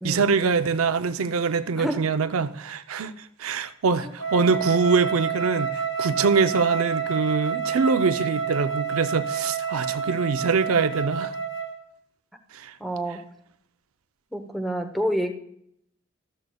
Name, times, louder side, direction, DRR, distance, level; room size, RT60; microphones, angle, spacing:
voice 1, 0.0-11.3 12.5-12.8, right 4 dB, 90° right, 0.6 m, -24 dB
voice 2, 1.8-2.1 12.8-13.2 14.3-15.3, equal, ahead, 0.8 m, -28 dB
Wind instrument woodwind instrument, 4.2-11.8, right 7 dB, 60° left, 1.2 m, -29 dB
13.5 x 13.0 x 2.3 m
head